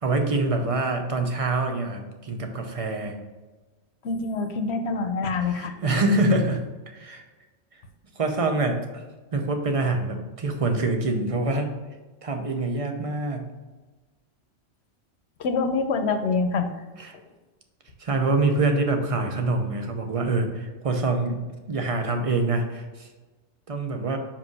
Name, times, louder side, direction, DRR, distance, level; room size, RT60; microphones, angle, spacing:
voice 1, 0.0-3.2 5.4-6.6 6.9-7.2 8.2-9.0 9.3-11.7 12.2-13.4 17.0-17.2 18.0-21.4 21.7-23.1 23.7-24.2, right 2 dB, 35° right, 5 dB, 0.8 m, -25 dB
voice 2, 4.0-5.7 15.4-16.7, left 4 dB, 65° left, 7 dB, 1.0 m, -25 dB
5.6 x 5.0 x 4.8 m, 1.2 s
omnidirectional pair, 1.3 m